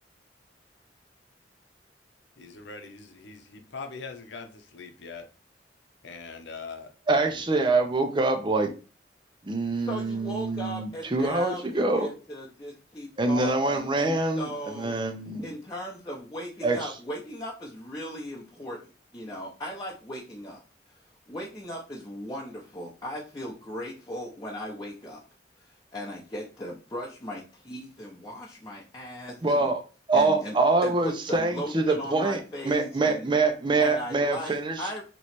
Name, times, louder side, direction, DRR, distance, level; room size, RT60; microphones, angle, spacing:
voice 1, 2.4-5.3 6.0-7.4, left 4 dB, 75° left, 0.8 m, -42 dB
voice 2, 7.1-8.7 9.4-12.1 13.2-15.5 16.6-16.9 29.4-29.8 30.1-32.4 32.6-35.0, right 3 dB, 25° right, 0.5 m, -25 dB
voice 3, 9.8-15.0 15.4-18.8 19.1-20.6 21.3-25.2 25.9-29.7 30.1-30.6 30.8-33.3 33.8-35.0, equal, 20° left, 0.8 m, -37 dB
3.1 x 3.1 x 4.2 m
head